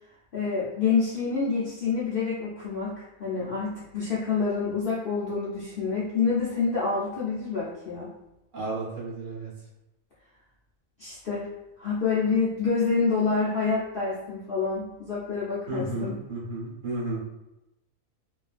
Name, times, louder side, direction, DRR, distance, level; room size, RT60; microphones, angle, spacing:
voice 1, 0.3-8.1 11.0-11.5 11.8-16.2, left 5 dB, 60° left, -8 dB, 0.6 m, -27 dB
voice 2, 8.5-9.5 15.7-17.2, right 2 dB, 65° right, -6 dB, 1.3 m, -32 dB
2.6 x 2.4 x 2.4 m, 0.91 s
omnidirectional pair, 1.5 m